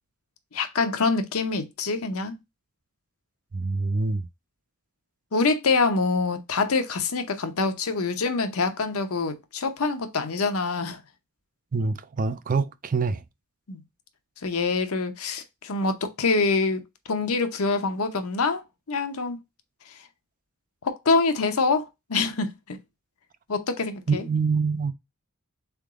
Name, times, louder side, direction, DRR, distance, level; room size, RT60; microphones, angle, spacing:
voice 1, 0.5-2.4 5.3-11.0 13.7-13.8 14.4-16.8 17.1-18.6 18.9-19.4 20.8-22.8 23.5-24.2, left 4 dB, 75° left, 0.8 m, -25 dB
voice 2, 3.5-4.3 11.7-13.2 24.1-24.9, right 4 dB, 35° right, 0.4 m, -25 dB
3.8 x 3.5 x 3.6 m
head